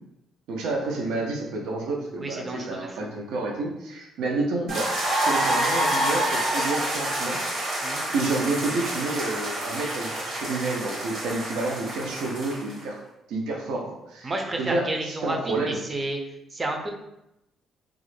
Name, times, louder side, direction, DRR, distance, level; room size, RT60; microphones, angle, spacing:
voice 1, 0.5-4.9 5.2-7.8 8.1-13.0 13.3-14.3 14.6-15.8, right 2 dB, 90° right, -1 dB, 0.4 m, -29 dB
voice 2, 2.2-3.1 7.8-8.0 14.2-16.2 16.5-16.9, right 2 dB, 30° right, 3 dB, 0.4 m, -31 dB
sound 1, 4.7-12.8, right 1 dB, 70° right, 1.1 m, -27 dB
2.4 x 2.0 x 3.1 m, 0.88 s
cardioid pair, 90°, 0 cm